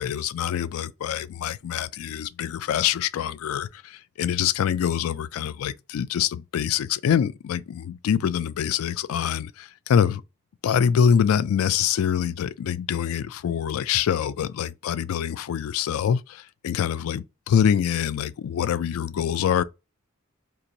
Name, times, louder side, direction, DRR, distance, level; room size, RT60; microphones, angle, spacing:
voice 1, 0.0-10.2 10.6-19.6, left 8 dB, 75° left, 0.3 m, -25 dB
2.8 x 2.5 x 3.9 m
head